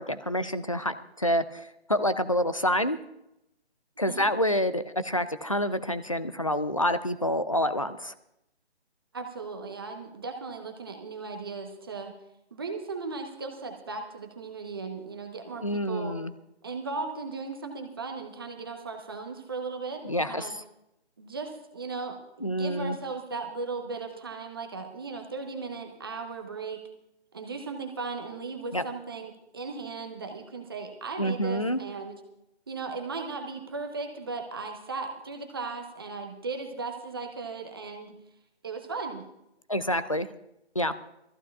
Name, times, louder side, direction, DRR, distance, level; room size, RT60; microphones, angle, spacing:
voice 1, 0.0-3.0 4.0-8.1 15.6-16.3 20.0-20.6 22.4-23.0 28.7-28.8 31.2-31.8 39.7-40.3 40.8-40.9, equal, 30° left, 12 dB, 0.4 m, -27 dB
voice 2, 9.1-12.1 12.5-16.2 16.6-20.5 21.2-26.8 27.3-32.2 32.7-38.1 38.6-39.3, right 4 dB, 20° right, 4 dB, 0.9 m, -37 dB
22.0 x 14.5 x 2.3 m, 0.85 s
figure-of-eight pair, 165°, 33 cm